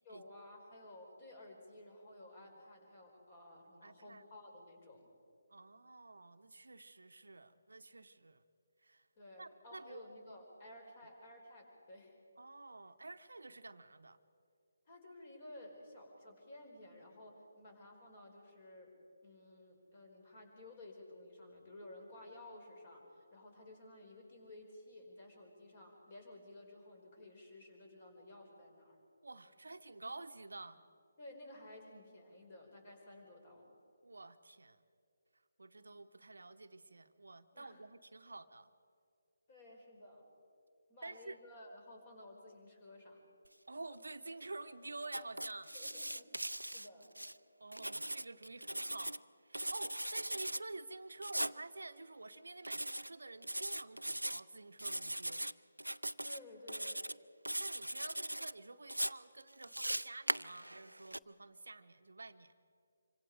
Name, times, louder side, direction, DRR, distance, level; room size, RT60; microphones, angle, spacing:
voice 1, 0.0-5.1 9.2-12.2 14.9-18.9 19.2-29.0 31.2-33.8 37.5-37.8 39.5-40.3 40.9-43.2 45.6-47.2 56.2-57.0, left 1 dB, 30° left, 2 dB, 4.9 m, -55 dB
voice 2, 3.8-4.2 5.5-8.4 8.8-9.1 9.4-10.1 12.4-14.2 29.2-30.9 34.0-34.8 35.6-38.7 41.0-41.4 43.7-45.7 47.6-55.5 57.6-62.5, right 2 dB, 65° right, 9 dB, 0.9 m, -50 dB
Writing, 45.0-47.3 47.7-49.2 49.5-50.6 51.2-51.6 52.6-53.1 53.4-54.4 54.8-55.5 55.8-56.4 56.7-57.1 57.4-58.5 58.9-61.2, right 1 dB, 85° right, 0.5 m, -39 dB
26.5 x 24.5 x 4.9 m, 2.5 s
figure-of-eight pair, 145°, 0 cm